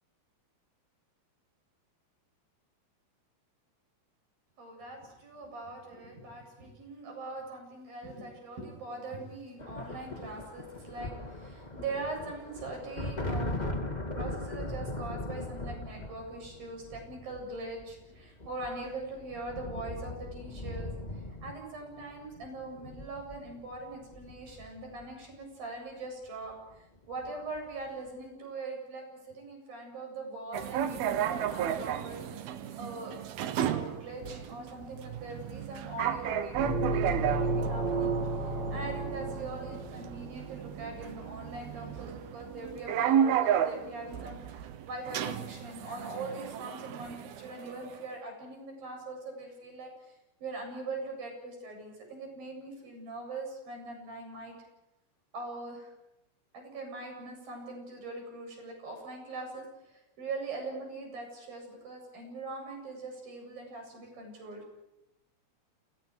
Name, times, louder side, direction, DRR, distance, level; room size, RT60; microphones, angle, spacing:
voice 1, 4.6-13.7 14.1-32.2 32.8-33.1 33.7-54.5 55.3-55.9 56.5-64.6, right 2 dB, 55° right, 2 dB, 9.6 m, -42 dB
sound 1, 9.6-25.3 26.5-26.7 27.0-27.7, left 1 dB, 65° left, 0.4 m, -40 dB
sound 2, 30.5-48.1, right 9 dB, 70° right, 3.0 m, -33 dB
sound 3, 36.5-40.3, right 2 dB, 35° right, 3.3 m, -32 dB
29.5 x 29.5 x 4.9 m, 0.93 s
omnidirectional pair, 5.0 m